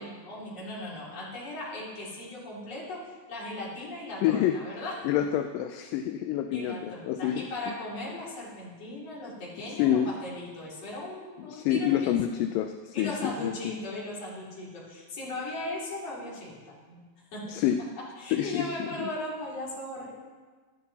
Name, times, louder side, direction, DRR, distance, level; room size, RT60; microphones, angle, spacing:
voice 1, 0.0-5.1 6.5-12.2 12.9-17.0 17.3-17.6 18.2-20.1, left 1 dB, 45° left, -6 dB, 4.0 m, -38 dB
voice 2, 4.2-4.8 5.0-7.7 9.8-10.1 11.5-13.5 17.5-17.8 18.3-19.1, left 10 dB, 80° left, 7 dB, 2.2 m, -28 dB
12.5 x 11.5 x 4.1 m, 1.4 s
omnidirectional pair, 4.0 m